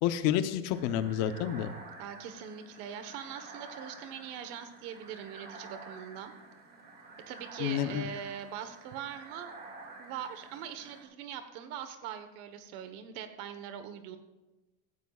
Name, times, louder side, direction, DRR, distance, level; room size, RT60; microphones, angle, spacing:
voice 1, 0.0-1.7 7.6-8.1, left 10 dB, 55° left, 10 dB, 0.9 m, -29 dB
sound 1, 0.7-11.0, right 3 dB, 30° right, 2.3 m, -50 dB
voice 2, 2.0-6.3 7.3-9.5 10.0-14.2, right 8 dB, 60° right, 8 dB, 1.3 m, -42 dB
17.0 x 15.0 x 2.4 m, 1.1 s
cardioid pair, 175°, 32 cm